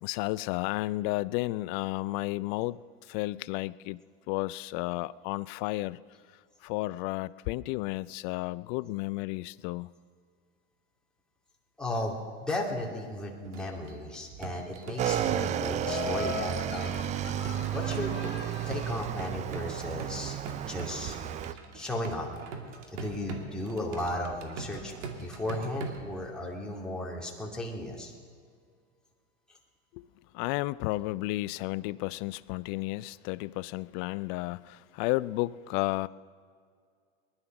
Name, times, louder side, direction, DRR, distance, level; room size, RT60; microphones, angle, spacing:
voice 1, 0.0-4.0 4.3-6.0 6.6-9.9 29.9-30.0 30.3-36.1, left 19 dB, 45° left, 19 dB, 0.5 m, -32 dB
voice 2, 11.8-17.0 17.3-18.1 18.7-20.4 20.7-21.2 21.7-22.3 22.9-28.1, left 1 dB, ahead, -3 dB, 2.6 m, -35 dB
sound 1, 13.4-26.1, right 4 dB, 70° right, 2.3 m, -43 dB
Motorcycle / Engine, 15.0-21.5, right 10 dB, 20° right, 0.3 m, -32 dB
Laughter, 15.8-19.0, left 6 dB, 30° left, 1.7 m, -39 dB
19.5 x 11.5 x 6.0 m, 2.1 s
hypercardioid pair, 110°, 37 cm